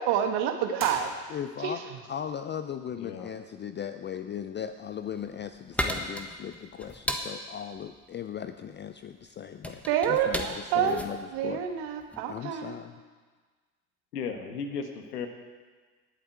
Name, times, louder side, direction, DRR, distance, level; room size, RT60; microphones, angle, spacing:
voice 1, 0.0-1.1 1.6-2.0 9.9-11.0 11.3-12.8, right 9 dB, 60° right, 6 dB, 1.5 m, -28 dB
sound 1, 0.7-1.8, right 3 dB, 25° right, 2.8 m, -41 dB
voice 2, 1.3-1.8 2.1-9.8 10.1-11.6 12.3-13.0, left 8 dB, 25° left, 9 dB, 0.5 m, -37 dB
voice 3, 3.0-3.3 14.1-15.3, left 6 dB, 80° left, 6 dB, 1.4 m, -35 dB
sound 2, 4.9-12.3, equal, 5° left, 1.3 m, -36 dB
19.5 x 7.8 x 4.6 m, 1.4 s
hypercardioid pair, 70°, 46 cm